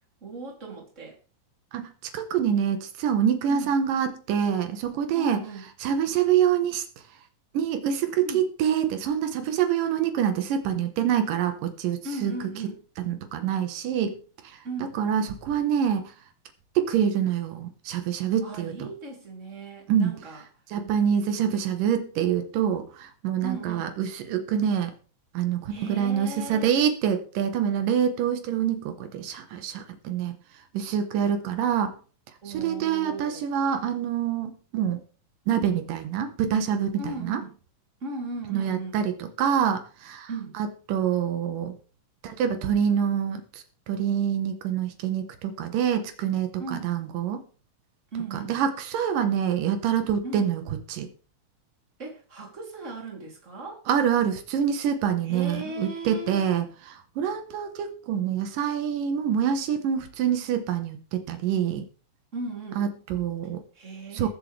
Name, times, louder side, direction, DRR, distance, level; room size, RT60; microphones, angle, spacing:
voice 1, 0.2-1.2 3.5-3.7 5.1-5.6 8.2-8.4 12.0-12.8 14.6-15.0 18.4-20.4 23.4-23.9 25.7-26.7 32.4-33.4 37.0-37.5 38.0-39.0 40.3-40.6 46.6-47.0 48.1-48.6 50.2-50.5 52.0-53.8 55.3-56.4 62.3-62.9 63.7-64.3, right 3 dB, 20° right, 0 dB, 3.1 m, -37 dB
voice 2, 1.7-5.4 5.8-6.8 7.5-12.3 13.0-14.2 14.4-16.1 16.8-18.9 19.9-20.1 20.7-24.9 25.3-32.0 32.5-35.0 35.5-37.4 38.5-40.3 40.5-41.7 42.2-47.4 48.3-50.6 50.9-51.1 53.9-61.9 62.8-63.6 64.1-64.3, right 8 dB, 85° right, 7 dB, 2.8 m, -26 dB
20.5 x 7.2 x 3.3 m, 0.40 s
omnidirectional pair, 3.7 m